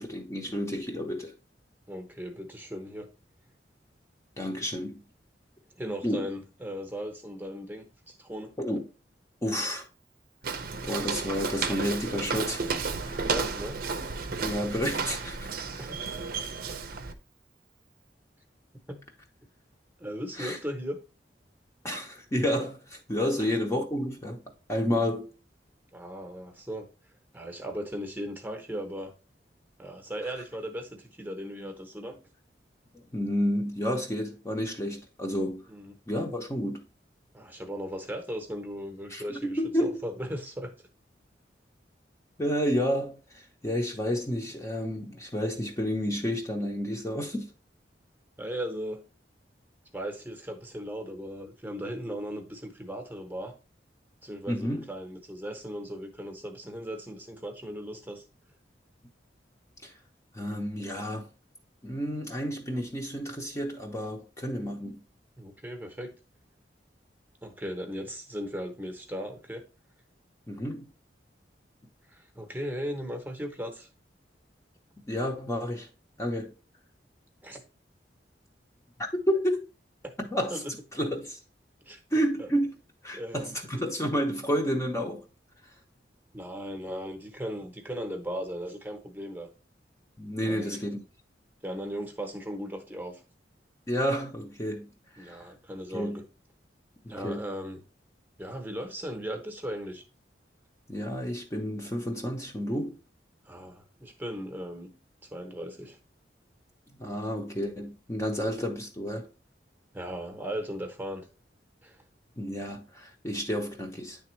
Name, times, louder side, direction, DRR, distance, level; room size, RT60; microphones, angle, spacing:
voice 1, 0.0-1.3 4.4-5.0 6.0-6.3 8.6-8.8 9.4-9.9 10.8-12.6 13.0-13.3 14.4-15.7 20.3-20.6 21.8-24.4 24.7-25.3 32.9-35.6 36.1-36.8 39.1-40.0 42.4-47.5 54.5-54.9 59.8-59.9 60.3-61.3 61.8-65.0 70.5-70.9 75.1-75.9 76.2-76.5 79.0-79.7 80.3-80.6 80.9-81.4 82.1-82.7 83.0-85.3 85.6-85.7 90.2-91.0 93.9-95.4 95.9-96.2 97.2-97.5 100.9-103.0 107.0-109.3 112.4-114.2, equal, 15° left, 0.7 m, -30 dB
voice 2, 1.9-3.1 5.8-8.5 13.2-13.8 15.8-16.1 18.9-19.0 20.0-21.0 23.4-23.5 25.9-26.9 27.3-29.1 29.8-32.2 35.7-35.9 37.3-40.7 48.4-49.0 49.9-53.5 54.2-58.2 65.4-66.1 67.4-69.6 72.1-73.9 77.4-77.6 80.5-80.7 81.9-82.0 82.4-82.5 83.1-83.6 86.3-89.5 90.4-90.8 91.6-93.2 95.2-96.2 97.1-97.8 98.4-100.0 103.5-104.9 105.3-106.0 109.9-111.3 111.8-112.0, equal, 10° right, 0.9 m, -37 dB
Walk footsteps, 10.4-17.1, right 4 dB, 55° right, 0.6 m, -32 dB
9.5 x 3.4 x 3.1 m
head